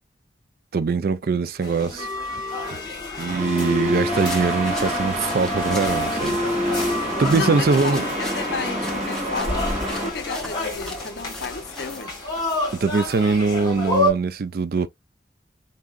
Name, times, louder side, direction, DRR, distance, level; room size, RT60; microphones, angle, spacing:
voice 1, 0.7-2.1 3.2-6.4 6.6-6.9 7.2-8.0 12.7-14.9, right 4 dB, 55° right, 0.4 m, -22 dB
sound 1, 1.6-14.1, left 1 dB, 25° left, 2.1 m, -28 dB
sound 2, 3.3-10.1, equal, 40° right, 1.6 m, -29 dB
sound 3, 4.1-12.0, left 1 dB, 5° left, 0.8 m, -39 dB
voice 2, 7.3-12.2, left 5 dB, 70° left, 0.6 m, -33 dB
4.2 x 3.6 x 2.3 m
head